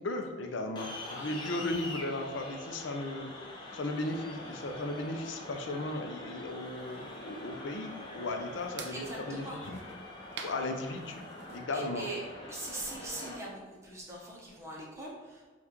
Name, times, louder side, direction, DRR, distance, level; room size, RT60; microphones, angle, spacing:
voice 1, 0.0-3.3 3.7-9.8 10.4-11.2 11.5-12.1, left 2 dB, 75° left, 4 dB, 0.5 m, -36 dB
sound 1, 0.8-13.4, left 2 dB, 25° left, 0.5 m, -44 dB
sound 2, 6.5-11.6, right 5 dB, 60° right, 0.4 m, -50 dB
voice 2, 8.9-9.8 11.7-12.2 12.5-15.4, right 2 dB, 15° right, -3 dB, 0.7 m, -41 dB
5.4 x 2.3 x 3.0 m, 1.4 s
head